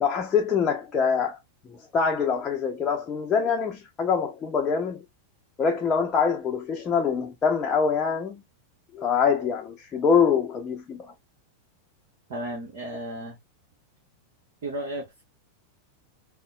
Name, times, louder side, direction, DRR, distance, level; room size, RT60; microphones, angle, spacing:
voice 1, 0.0-1.4 1.7-5.1 5.6-8.4 8.9-11.1, left 6 dB, 25° left, 0.6 m, -24 dB
voice 2, 12.3-13.4 14.6-15.2, right 1 dB, 55° right, 1.1 m, -34 dB
4.0 x 2.1 x 2.3 m
figure-of-eight pair, 90°, 0 cm